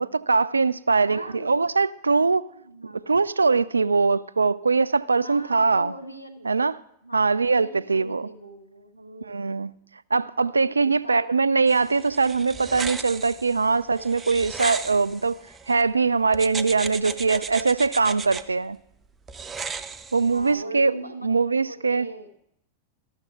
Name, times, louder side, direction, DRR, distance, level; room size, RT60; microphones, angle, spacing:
voice 1, 0.0-2.5 2.9-5.9 6.4-6.7 7.1-8.3 9.3-9.7 10.1-15.4 15.7-18.8 20.1-21.0 21.2-22.1, right 4 dB, 80° right, 0.3 m, -22 dB
voice 2, 0.9-1.5 2.5-3.2 5.2-6.5 7.0-9.7 10.8-11.3 17.1-17.6 20.2-22.6, right 1 dB, 90° left, 1.0 m, -41 dB
sound 1, 11.7-15.8 16.3-18.4 19.3-20.6, right 5 dB, 15° right, 0.6 m, -35 dB
13.5 x 6.5 x 5.8 m
figure-of-eight pair, 90°, 0 cm